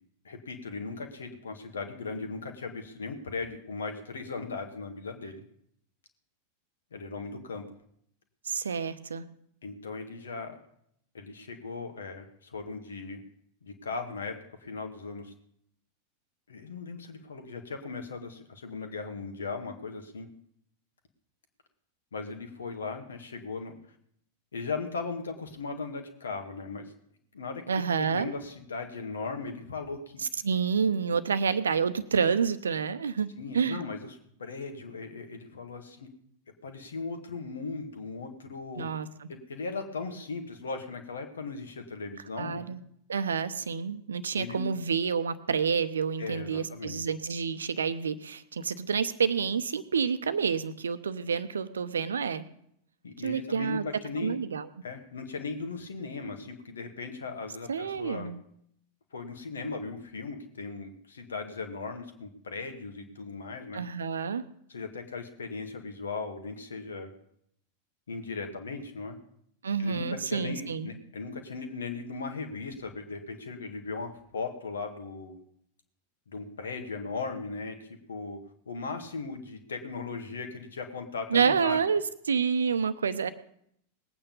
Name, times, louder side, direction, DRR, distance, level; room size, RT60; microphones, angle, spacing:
voice 1, 0.2-5.4 6.9-7.7 9.6-10.6 11.1-13.2 13.6-15.3 16.5-20.3 22.1-23.7 24.5-26.9 27.3-30.2 33.4-34.1 34.4-36.1 36.6-38.9 39.3-42.7 44.4-44.6 46.2-47.0 53.0-54.4 54.8-58.3 59.1-63.8 64.7-67.1 68.1-69.2 69.8-75.4 76.3-78.4 78.7-81.8, left 4 dB, 70° left, 6 dB, 2.0 m, -38 dB
voice 2, 8.4-9.2 27.7-28.3 30.2-33.3 33.5-33.8 38.8-39.3 42.4-42.8 43.1-52.4 53.2-53.8 54.2-54.7 57.7-58.4 63.7-64.4 69.6-70.9 81.3-83.3, right 6 dB, 70° right, 13 dB, 0.8 m, -28 dB
19.5 x 8.9 x 5.5 m, 0.71 s
figure-of-eight pair, 90°, 0 cm